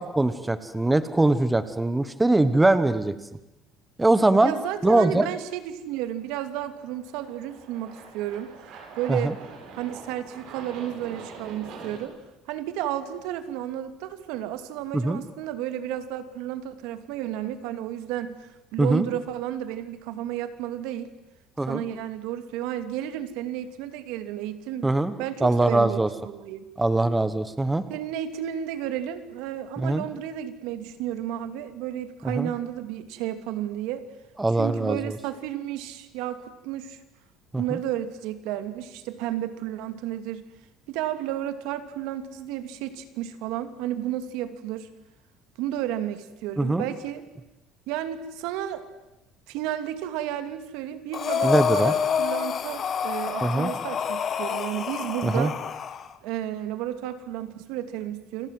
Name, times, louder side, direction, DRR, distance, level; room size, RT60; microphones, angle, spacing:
voice 1, 0.2-3.1 4.0-4.5 4.8-5.3 9.1-9.3 14.9-15.2 18.8-19.1 21.6-21.9 24.8-26.1 26.8-27.8 29.8-30.0 32.2-32.5 34.4-35.2 37.5-37.8 46.6-46.8 51.4-51.9 53.4-53.7 55.2-55.5, right 2 dB, 10° right, 12 dB, 1.1 m, -22 dB
voice 2, 4.4-8.5 9.0-9.3 9.8-12.1 12.5-18.4 18.7-21.1 21.7-24.9 25.2-26.6 27.9-34.0 34.6-37.0 37.6-40.5 40.9-44.9 45.6-47.2 47.9-48.8 49.5-55.6 56.2-58.5, right 11 dB, 80° right, 10 dB, 2.7 m, -32 dB
Aircraft, 6.3-12.0, right 4 dB, 55° right, 7.6 m, -44 dB
Breathing, 51.1-56.1, left 7 dB, 30° left, 1.4 m, -27 dB
29.0 x 26.0 x 7.7 m, 0.96 s
cardioid pair, 165°, 0 cm